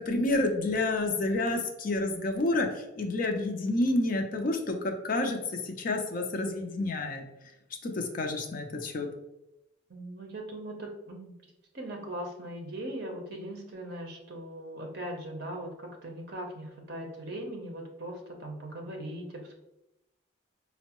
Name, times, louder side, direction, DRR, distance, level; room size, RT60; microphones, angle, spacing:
voice 1, 0.0-2.7 3.0-7.2 7.8-9.1, left 2 dB, 45° left, 4 dB, 0.4 m, -29 dB
voice 2, 9.9-11.3 11.7-19.5, right 1 dB, 50° right, 1 dB, 0.6 m, -39 dB
4.3 x 2.1 x 2.9 m, 0.89 s
head